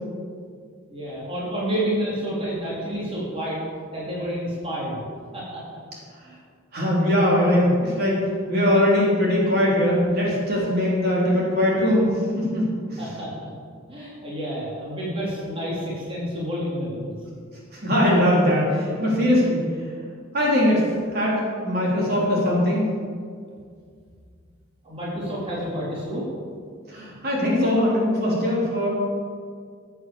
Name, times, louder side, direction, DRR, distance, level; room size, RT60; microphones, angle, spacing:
voice 1, 0.9-3.6 3.9-5.0 5.3-5.6 6.2-6.4 13.0-13.3 13.9-17.1 24.8-26.3, equal, 25° right, -6 dB, 3.5 m, -29 dB
voice 2, 6.7-8.2 8.5-12.1 12.3-13.0 17.7-19.6 20.3-20.8 21.1-22.8 26.9-28.9, left 1 dB, 50° right, -4 dB, 3.7 m, -21 dB
15.5 x 8.3 x 7.1 m, 2.1 s
head